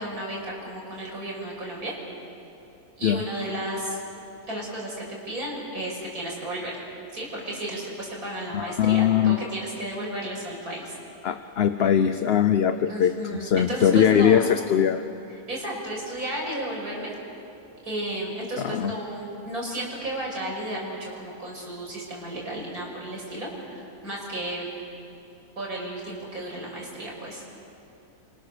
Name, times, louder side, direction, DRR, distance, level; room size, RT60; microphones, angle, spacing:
voice 1, 0.0-2.0 3.0-4.0 4.4-6.8 7.1-10.9 12.9-14.4 15.5-17.1 17.8-24.7 25.6-27.4, right 1 dB, 75° right, -3 dB, 6.8 m, -33 dB
voice 2, 8.5-9.4 11.2-15.0 18.6-18.9, left 9 dB, 50° left, 10 dB, 0.8 m, -21 dB
30.0 x 25.5 x 6.8 m, 2.9 s
omnidirectional pair, 1.6 m